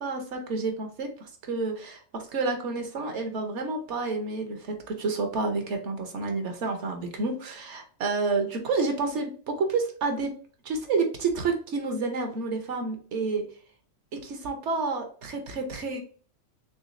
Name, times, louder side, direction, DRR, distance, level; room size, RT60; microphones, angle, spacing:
voice 1, 0.0-10.3 10.6-13.4 14.1-16.0, right 3 dB, 65° right, 4 dB, 1.0 m, -29 dB
3.9 x 3.4 x 2.5 m, 0.43 s
omnidirectional pair, 1.4 m